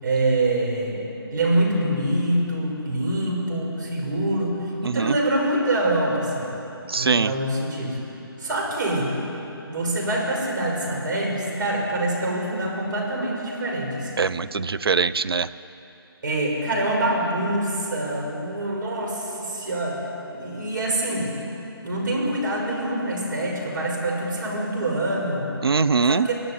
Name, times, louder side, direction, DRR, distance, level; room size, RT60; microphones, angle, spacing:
voice 1, 0.0-6.5 7.0-8.0 8.4-9.1 9.7-14.1 16.2-20.0 20.3-21.3 21.8-25.5 26.1-26.3, right 1 dB, 50° right, -1 dB, 6.2 m, -25 dB
voice 2, 4.8-5.2 6.9-7.3 14.2-15.5 25.6-26.3, right 5 dB, 70° right, 13 dB, 0.9 m, -22 dB
25.0 x 16.0 x 9.7 m, 3.0 s
figure-of-eight pair, 160°, 13 cm